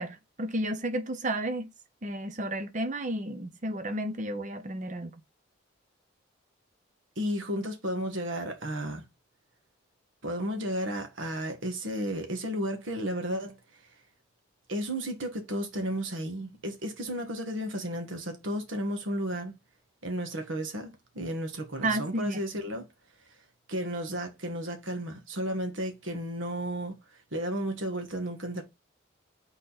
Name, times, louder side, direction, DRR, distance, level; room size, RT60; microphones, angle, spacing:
voice 1, 0.0-1.7 2.0-5.1 21.8-22.4, right 1 dB, 35° right, 0.8 m, -32 dB
voice 2, 7.2-9.0 10.2-13.6 14.7-19.6 20.0-22.9 23.7-27.0 27.3-28.6, equal, 70° right, 1.7 m, -33 dB
6.3 x 4.1 x 4.1 m
head